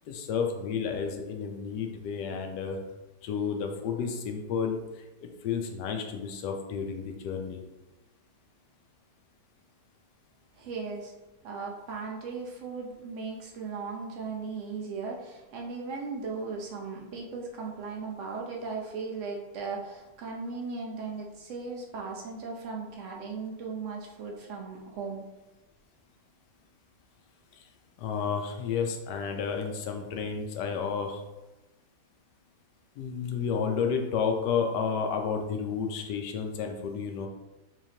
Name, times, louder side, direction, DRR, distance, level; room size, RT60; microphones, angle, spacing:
voice 1, 0.1-2.8 3.2-7.6 27.5-27.6 28.0-31.2 33.0-37.3, left 6 dB, 85° left, 4 dB, 1.2 m, -31 dB
voice 2, 10.5-11.1 11.4-25.3, right 4 dB, 60° right, -1 dB, 0.8 m, -37 dB
4.1 x 3.1 x 2.7 m, 1.0 s
omnidirectional pair, 1.8 m